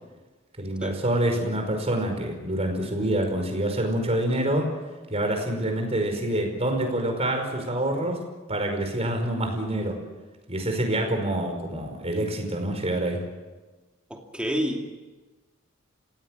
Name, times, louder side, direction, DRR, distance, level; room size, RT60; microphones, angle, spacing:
voice 1, 0.6-4.8 5.1-8.2 8.5-10.0 10.5-13.2, right 1 dB, 30° right, 4 dB, 5.2 m, -26 dB
voice 2, 14.1-14.8, equal, 5° right, 2 dB, 2.8 m, -29 dB
29.5 x 17.0 x 7.6 m, 1.2 s
head